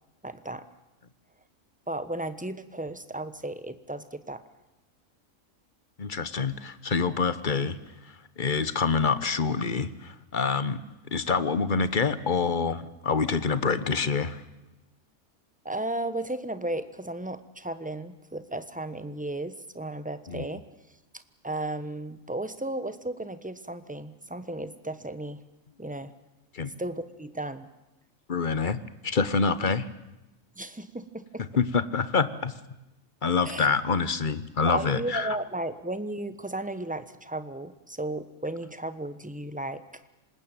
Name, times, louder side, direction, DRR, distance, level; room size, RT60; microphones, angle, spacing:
voice 1, 0.2-0.7 1.9-4.4 15.6-20.6 21.4-25.4 25.8-26.1 26.8-27.7 30.6-31.4 33.4-33.7 34.6-39.8, right 1 dB, 5° right, 12 dB, 1.1 m, -34 dB
voice 2, 6.0-7.8 8.4-10.8 11.1-14.4 20.3-20.5 26.5-26.7 28.3-29.9 31.6-32.5 33.2-35.4, left 5 dB, 40° left, 14 dB, 1.2 m, -26 dB
26.5 x 20.0 x 9.1 m, 0.98 s
omnidirectional pair, 1.4 m